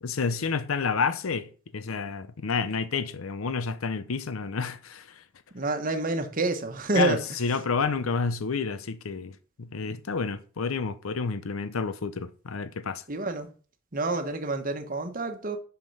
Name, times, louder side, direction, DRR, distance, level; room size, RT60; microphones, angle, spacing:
voice 1, 0.0-5.1 6.9-13.0, left 5 dB, 90° left, 0.6 m, -30 dB
voice 2, 5.5-7.4 13.1-13.5 13.9-15.6, right 2 dB, 40° right, 1.1 m, -28 dB
7.5 x 6.0 x 5.3 m
head